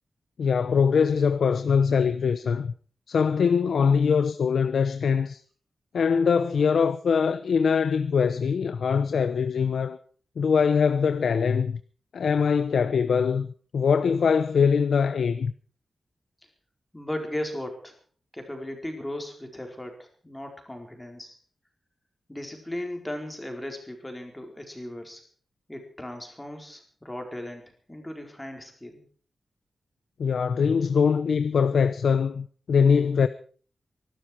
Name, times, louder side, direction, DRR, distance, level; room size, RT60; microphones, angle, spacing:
voice 1, 0.4-2.7 3.1-5.4 5.9-10.0 10.4-11.8 12.1-13.5 13.7-15.5 30.2-33.3, left 6 dB, 80° left, 0.8 m, -22 dB
voice 2, 16.9-18.0 18.3-21.4 22.3-25.2 25.7-29.0, left 1 dB, 10° left, 4.5 m, -37 dB
23.5 x 12.5 x 4.6 m
wide cardioid pair, 135°, 0 cm